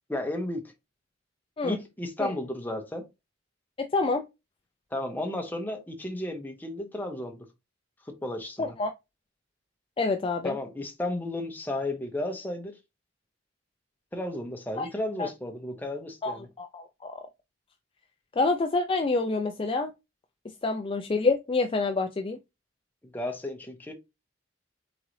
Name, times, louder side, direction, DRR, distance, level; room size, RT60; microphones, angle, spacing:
voice 1, 0.1-0.7 1.6-3.0 4.9-7.4 8.1-8.8 10.4-12.7 14.1-16.5 23.0-23.9, left 1 dB, 10° left, 0.9 m, -33 dB
voice 2, 3.8-4.3 8.6-8.9 10.0-10.5 14.8-14.9 15.2-15.3 16.2-17.2 18.4-19.9 20.6-22.4, left 3 dB, 30° left, 0.4 m, -27 dB
4.0 x 3.7 x 3.1 m
head